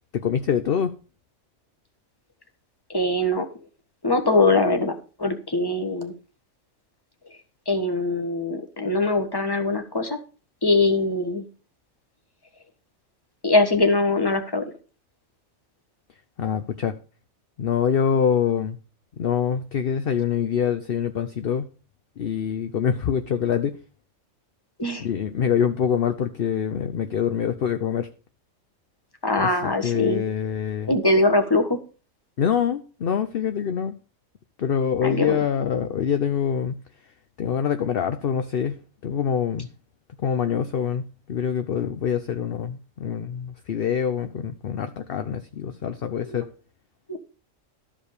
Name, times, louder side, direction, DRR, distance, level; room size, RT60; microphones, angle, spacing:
voice 1, 0.1-0.9 16.4-16.9 17.6-18.8 19.2-21.7 22.2-23.8 25.0-28.1 29.4-31.0 32.4-33.9 34.6-36.8 37.4-39.7 40.2-46.4, left 8 dB, 50° left, 0.8 m, -25 dB
voice 2, 2.9-3.5 4.0-6.1 7.7-10.2 10.6-11.4 13.4-14.6 24.8-25.1 29.2-30.2 30.9-31.8 35.0-35.4 46.1-46.3 47.1-47.2, left 2 dB, 15° left, 1.4 m, -22 dB
13.0 x 5.1 x 6.6 m
omnidirectional pair, 1.4 m